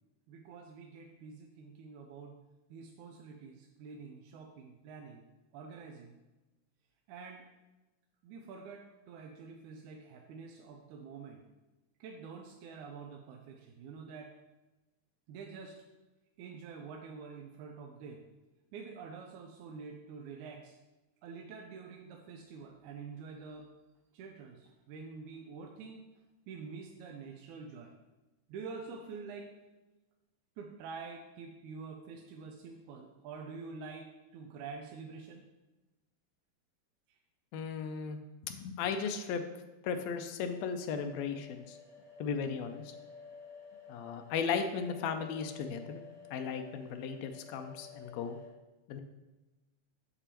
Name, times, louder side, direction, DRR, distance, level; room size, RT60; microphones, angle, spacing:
voice 1, 0.3-2.4 2.7-5.2 5.5-6.1 7.1-7.4 8.2-11.4 12.0-14.3 15.3-15.8 16.4-18.2 18.7-20.8 21.2-23.7 24.1-26.0 26.5-27.9 28.5-29.5 30.6-35.4, right 5 dB, 85° right, 2 dB, 2.0 m, -47 dB
voice 2, 37.5-38.2 38.5-39.4 39.8-41.8 42.2-42.8 43.9-46.0 46.3-48.4 48.9-49.0, left 6 dB, 80° left, 7 dB, 1.6 m, -36 dB
sound 1, 40.9-48.5, left 5 dB, ahead, 0.6 m, -52 dB
6.8 x 6.8 x 2.9 m, 1.1 s
omnidirectional pair, 3.4 m